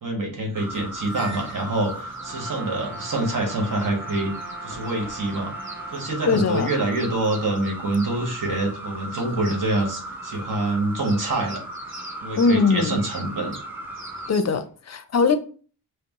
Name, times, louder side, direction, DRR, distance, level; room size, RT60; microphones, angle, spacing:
voice 1, 0.0-4.3 4.6-5.5 5.9-11.6 12.2-13.5, right 2 dB, 50° right, 1.4 m, -26 dB
sound 1, 0.5-14.3, right 1 dB, 5° right, 1.0 m, -37 dB
sound 2, 0.7-14.6, right 2 dB, 30° right, 1.2 m, -45 dB
Brass instrument, 2.2-6.2, right 6 dB, 65° right, 0.6 m, -43 dB
voice 2, 6.3-6.7 12.4-13.0 14.3-15.4, left 4 dB, 40° left, 0.6 m, -21 dB
5.1 x 2.1 x 3.0 m
cardioid pair, 50°, 40 cm